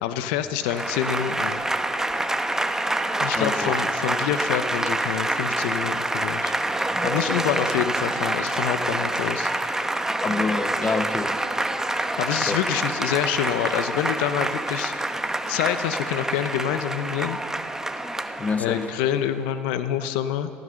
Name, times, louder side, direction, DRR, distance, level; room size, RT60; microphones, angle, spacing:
voice 1, 0.0-1.6 3.2-6.5 7.0-9.5 12.2-14.9 15.5-17.4 18.6-20.5, left 10 dB, 80° left, 11 dB, 0.7 m, -27 dB
Applause / Crowd, 0.6-19.2, right 1 dB, 10° right, 0.9 m, -27 dB
voice 2, 3.3-3.8 10.2-11.3 12.5-12.6 18.4-18.9, left 4 dB, 30° left, 10 dB, 1.0 m, -27 dB
14.5 x 14.0 x 6.4 m, 2.5 s
supercardioid pair, 80°, 6 cm